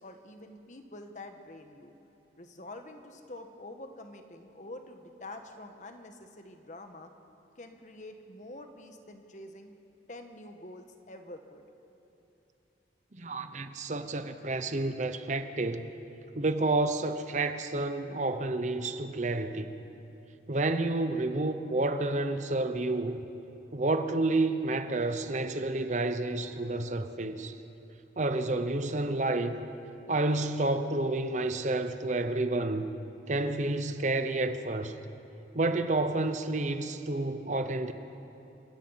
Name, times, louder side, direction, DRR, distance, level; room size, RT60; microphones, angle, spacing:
voice 1, 0.0-1.9 2.4-7.1 7.6-9.7 10.1-11.7, left 1 dB, 45° left, 1.4 m, -46 dB
voice 2, 13.2-15.9 16.3-19.7 20.5-23.2 23.7-27.5 28.2-29.5 30.1-32.9 33.3-35.0 35.5-37.9, right 2 dB, 40° right, 0.9 m, -30 dB
29.0 x 16.5 x 5.8 m
head